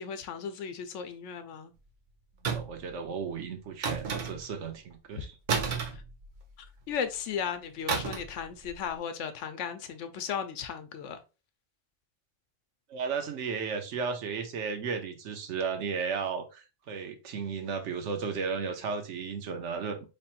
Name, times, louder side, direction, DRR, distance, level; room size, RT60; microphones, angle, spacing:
voice 1, 0.0-1.7 5.1-5.3 6.9-11.2, left 7 dB, 75° left, 0.9 m, -35 dB
sound 1, 2.4-2.9 3.8-4.6 5.5-6.7 7.9-8.4 8.6-8.9, right 5 dB, 50° right, 0.7 m, -32 dB
voice 2, 2.4-5.3 12.9-20.1, right 5 dB, 70° right, 1.0 m, -34 dB
4.2 x 3.3 x 2.4 m
omnidirectional pair, 1.3 m